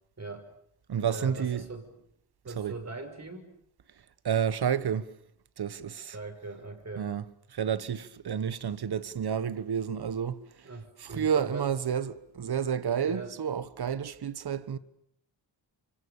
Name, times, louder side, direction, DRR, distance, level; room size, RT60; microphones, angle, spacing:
voice 1, 0.2-0.5 1.1-2.0 2.4-3.5 6.1-7.1 10.6-11.7 13.0-13.4, right 3 dB, 35° right, 6.2 m, -40 dB
voice 2, 0.9-1.7 2.6-2.7 4.2-5.1 5.6-6.2 7.0-7.2 7.5-10.7 11.0-14.8, right 8 dB, 55° right, 1.4 m, -30 dB
29.0 x 25.0 x 7.2 m
cardioid pair, 70°, 46 cm